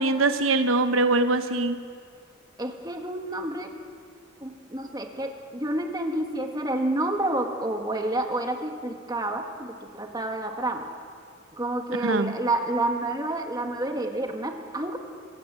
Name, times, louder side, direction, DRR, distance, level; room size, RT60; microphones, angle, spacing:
voice 1, 0.0-1.8 12.0-12.3, right 2 dB, 80° right, 8 dB, 1.0 m, -23 dB
voice 2, 2.6-3.7 4.4-10.8 11.5-15.0, right 1 dB, 20° right, 3 dB, 1.8 m, -29 dB
25.5 x 16.0 x 7.6 m, 2.2 s
head